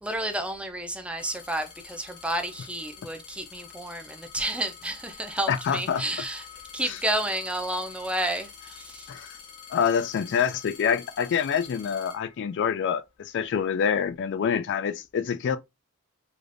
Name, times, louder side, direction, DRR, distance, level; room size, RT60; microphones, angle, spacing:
voice 1, 0.0-6.4 6.7-9.1, right 1 dB, 5° right, 0.5 m, -31 dB
sound 1, 1.2-12.9 13.6-14.2, left 7 dB, 90° left, 1.0 m, -47 dB
voice 2, 5.5-6.0 6.8-7.0 9.1-9.4 9.7-15.6, left 7 dB, 55° left, 0.3 m, -26 dB
4.9 x 2.5 x 2.5 m
head